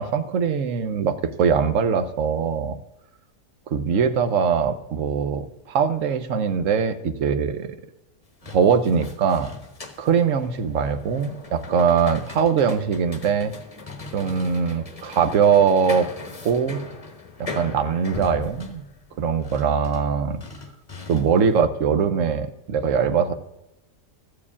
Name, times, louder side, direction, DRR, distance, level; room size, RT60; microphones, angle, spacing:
voice 1, 0.0-2.8 3.7-7.7 8.5-9.5 10.0-13.5 14.1-16.1 16.4-16.8 17.4-18.8 19.2-20.4 21.1-23.3, right 6 dB, 60° right, 10 dB, 1.0 m, -22 dB
sound 1, 8.2-21.5, left 3 dB, 25° left, 1.0 m, -39 dB
13.5 x 4.8 x 8.4 m, 0.98 s
omnidirectional pair, 1.7 m